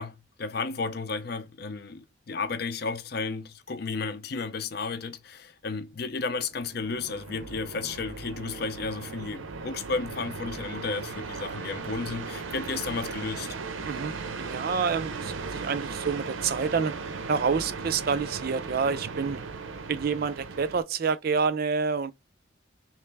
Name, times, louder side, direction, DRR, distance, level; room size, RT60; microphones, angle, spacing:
voice 1, 0.0-13.5, left 4 dB, 50° left, 0.6 m, -33 dB
sound 1, 6.4-20.8, right 4 dB, 85° right, 0.7 m, -37 dB
voice 2, 13.8-16.9 17.3-19.4 19.9-22.1, right 5 dB, 50° right, 0.4 m, -28 dB
3.2 x 3.0 x 3.3 m
head